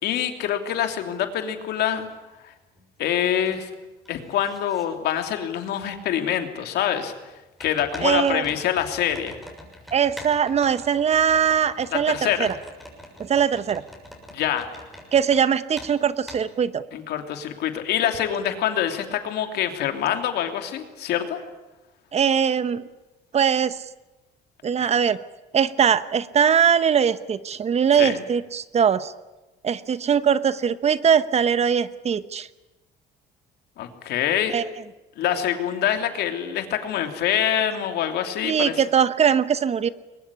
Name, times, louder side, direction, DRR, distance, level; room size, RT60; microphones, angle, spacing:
voice 1, 0.0-2.1 2.4-2.5 3.0-3.7 4.1-7.1 7.6-9.3 11.9-12.5 14.3-14.7 16.9-21.4 24.8-24.9 28.0-28.2 33.8-34.5 35.2-38.8, left 10 dB, 75° left, 6 dB, 3.0 m, -25 dB
sound 1, 2.1-2.2 2.7-3.6 3.8-4.8 5.9-6.0 7.6-15.4 15.7-15.9 16.3-16.4, equal, ahead, 6.7 m, -43 dB
voice 2, 8.0-8.4 9.9-12.6 13.2-13.8 15.1-16.8 22.1-22.9 23.3-23.8 24.6-25.2 25.5-29.1 29.6-32.5 34.5-34.6 38.4-39.9, right 7 dB, 40° right, 15 dB, 1.0 m, -21 dB
22.0 x 20.5 x 10.0 m, 1.1 s
cardioid pair, 110°, 17 cm